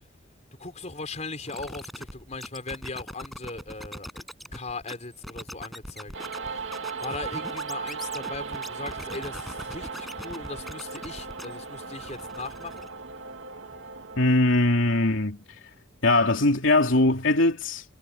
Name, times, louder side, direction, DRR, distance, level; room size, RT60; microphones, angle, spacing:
voice 1, 0.6-4.2 4.5-6.2 6.5-6.6 7.0-12.9, left 3 dB, 35° left, 4.5 m, -38 dB
sound 1, 1.5-11.7 12.0-12.9, equal, ahead, 6.0 m, -41 dB
sound 2, 6.1-14.3, right 5 dB, 75° right, 2.5 m, -37 dB
voice 2, 14.2-15.4 16.0-17.8, left 2 dB, 85° left, 3.0 m, -21 dB
head